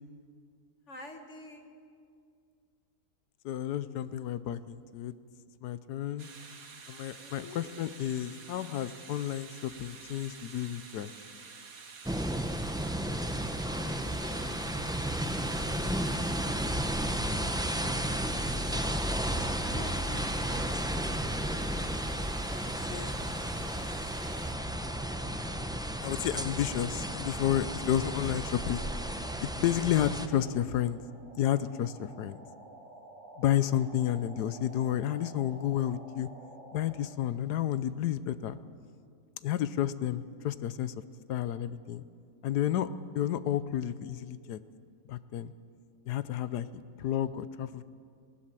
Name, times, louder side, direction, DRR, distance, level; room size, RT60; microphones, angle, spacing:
voice 1, 0.9-1.7 6.2-6.4 7.2-7.7 13.5-15.1 19.6-20.9 33.5-33.9, left 1 dB, 45° left, 5 dB, 1.7 m, -48 dB
voice 2, 3.4-5.1 5.6-6.3 6.9-11.1 22.9-23.8 24.4-24.7 26.0-28.9 29.4-31.0 31.4-32.4 33.4-36.3 36.7-38.6 39.4-40.9 41.3-42.0 42.4-42.9 43.1-44.6 45.1-45.5 46.1-47.8, left 11 dB, 80° left, 14 dB, 1.3 m, -31 dB
sound 1, 6.2-24.5, right 5 dB, 60° right, 1.9 m, -48 dB
sound 2, 12.1-30.3, right 1 dB, 5° right, 0.4 m, -33 dB
sound 3, 19.3-37.1, right 2 dB, 30° right, 3.6 m, -51 dB
20.0 x 17.5 x 7.5 m, 2.2 s
omnidirectional pair, 1.7 m